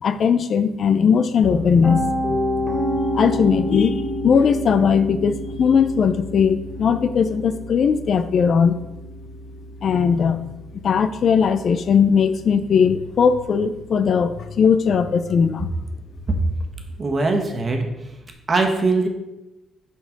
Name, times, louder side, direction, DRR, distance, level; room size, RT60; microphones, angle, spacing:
voice 1, 0.0-2.0 2.3-2.4 3.1-4.0 4.2-8.8 9.8-10.5 10.8-15.7, left 6 dB, 55° left, 11 dB, 0.5 m, -18 dB
Piano, 1.4-13.3, equal, 30° left, 2.5 m, -29 dB
voice 2, 17.0-17.9 18.5-19.1, right 3 dB, 35° right, 3 dB, 1.4 m, -20 dB
6.0 x 5.2 x 5.2 m, 0.98 s
cardioid pair, 90°, 0 cm